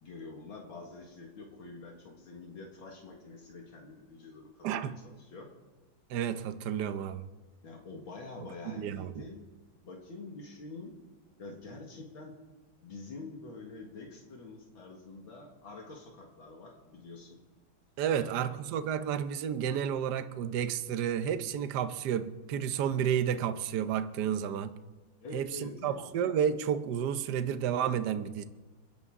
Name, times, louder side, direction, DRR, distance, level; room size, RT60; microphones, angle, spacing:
voice 1, 0.0-5.5 7.6-9.4 9.8-10.9 11.4-12.3 12.8-17.4 18.1-18.5 25.2-26.0, left 3 dB, 75° left, 0 dB, 2.6 m, -46 dB
voice 2, 4.6-5.0 6.1-7.2 8.7-9.2 18.0-24.8 25.3-28.4, right 9 dB, 65° right, 11 dB, 1.3 m, -31 dB
29.5 x 11.0 x 3.7 m, 1.3 s
omnidirectional pair, 2.2 m